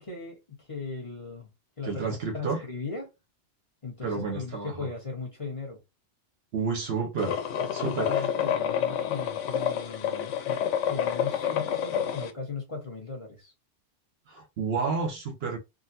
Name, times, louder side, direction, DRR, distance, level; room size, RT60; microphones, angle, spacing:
voice 1, 0.0-1.5 1.8-2.0 2.3-3.1 3.8-5.8 7.8-10.6 10.9-13.5, left 4 dB, 30° left, 1.0 m, -38 dB
voice 2, 1.8-2.7 4.0-4.9 6.5-7.4 7.7-8.3 8.9-9.0 14.3-15.6, right 5 dB, 65° right, 0.8 m, -31 dB
sound 1, 7.2-12.3, left 9 dB, 85° left, 0.9 m, -28 dB
3.8 x 2.1 x 2.6 m
omnidirectional pair, 1.2 m